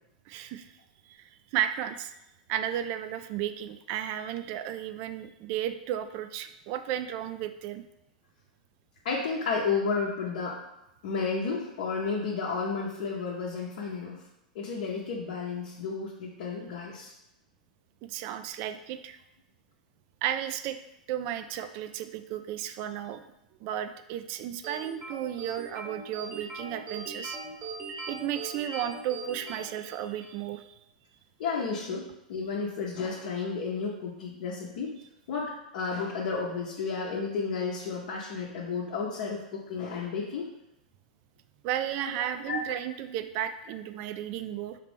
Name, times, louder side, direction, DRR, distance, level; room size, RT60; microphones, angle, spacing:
voice 1, 0.3-0.7 1.1-2.1 2.5-7.9 18.0-19.2 20.2-20.8 21.1-23.2 23.6-27.4 28.1-30.7 41.6-44.8, right 11 dB, 45° right, 10 dB, 0.3 m, -34 dB
voice 2, 9.0-10.6 11.0-14.2 14.5-17.1 31.4-34.9 35.3-40.5 42.0-42.6, left 5 dB, 60° left, -4 dB, 0.8 m, -32 dB
sound 1, 24.6-30.4, right 3 dB, 25° right, 0.9 m, -40 dB
4.9 x 2.9 x 3.4 m, 0.87 s
hypercardioid pair, 100°, 4 cm